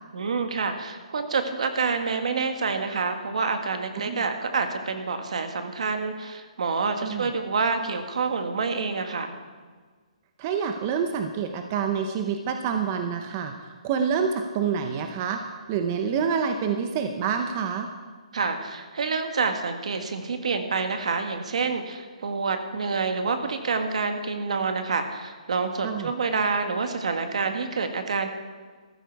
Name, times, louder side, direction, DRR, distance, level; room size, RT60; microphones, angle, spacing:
voice 1, 0.1-9.3 18.3-28.3, right 4 dB, 65° right, 7 dB, 1.6 m, -27 dB
voice 2, 7.0-7.3 10.4-13.5 13.8-15.4 15.7-17.9 25.8-26.1, right 6 dB, 25° right, 6 dB, 0.7 m, -27 dB
14.0 x 12.0 x 4.7 m, 1.5 s
hypercardioid pair, 170°, 4 cm